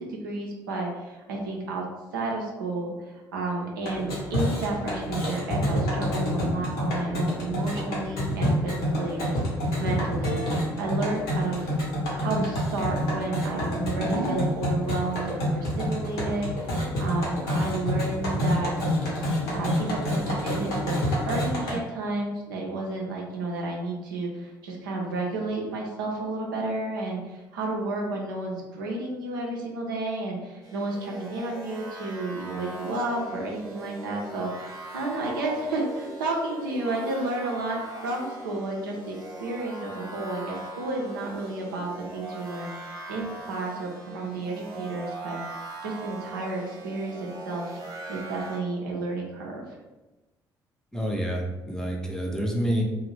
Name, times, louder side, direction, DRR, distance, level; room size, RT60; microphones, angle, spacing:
voice 1, 0.0-1.8 2.1-9.4 9.8-11.7 12.1-18.7 19.5-42.7 43.1-45.4 45.8-47.8 48.1-49.6, right 2 dB, 75° right, -1 dB, 0.5 m, -31 dB
sound 1, 3.8-21.7, equal, 65° left, 0.8 m, -28 dB
sound 2, 30.6-48.6, right 2 dB, 30° right, 0.9 m, -40 dB
voice 2, 50.9-52.8, equal, 5° left, -1 dB, 0.6 m, -28 dB
2.5 x 2.0 x 3.2 m, 1.1 s
figure-of-eight pair, 45°, 11 cm